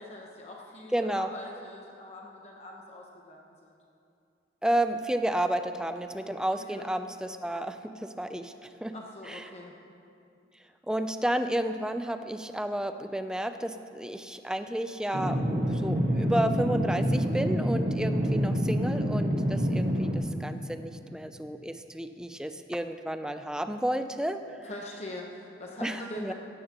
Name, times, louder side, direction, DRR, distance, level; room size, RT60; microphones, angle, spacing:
voice 1, 0.0-3.7 6.6-6.9 8.9-9.7 24.6-26.3, left 1 dB, 35° left, -1 dB, 1.0 m, -43 dB
voice 2, 0.9-1.3 4.6-8.9 9.3-9.5 10.9-24.6 25.8-26.3, right 1 dB, 5° right, 8 dB, 0.4 m, -31 dB
sound 1, 15.1-20.1, equal, 55° right, 1.6 m, -27 dB
17.0 x 13.0 x 2.9 m, 2.6 s
head